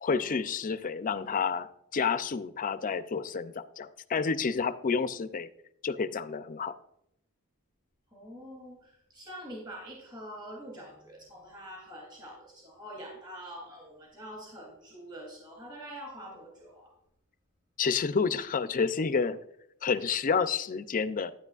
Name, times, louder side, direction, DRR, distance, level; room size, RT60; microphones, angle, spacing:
voice 1, 0.0-1.7 1.9-5.5 5.8-6.7 17.8-19.4 19.8-21.3, left 5 dB, 40° left, 12 dB, 0.5 m, -29 dB
voice 2, 8.1-16.9, equal, 20° right, -1 dB, 2.8 m, -45 dB
10.5 x 9.8 x 2.4 m, 0.77 s
head